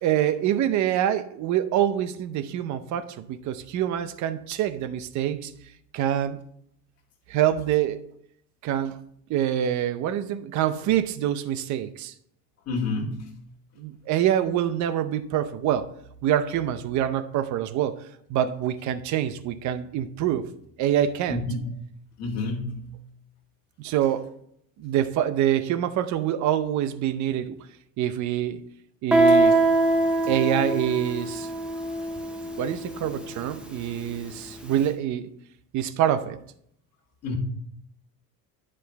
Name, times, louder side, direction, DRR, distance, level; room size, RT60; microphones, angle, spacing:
voice 1, 0.0-5.5 5.9-6.4 7.3-8.0 8.6-9.0 9.3-12.1 13.8-15.9 16.2-18.0 18.3-20.5 20.8-21.4 23.8-24.3 24.8-27.6 28.0-28.6 29.0-29.5 30.3-31.5 32.6-35.3 35.7-36.4, right 11 dB, 50° right, 0.6 m, -25 dB
voice 2, 12.7-13.3 21.3-21.7 22.2-22.9 29.1-29.2 37.2-37.4, left 3 dB, 45° left, 1.6 m, -29 dB
Guitar, 29.1-34.6, right 2 dB, 5° right, 0.5 m, -23 dB
9.7 x 5.0 x 3.4 m
cardioid pair, 155°, 36 cm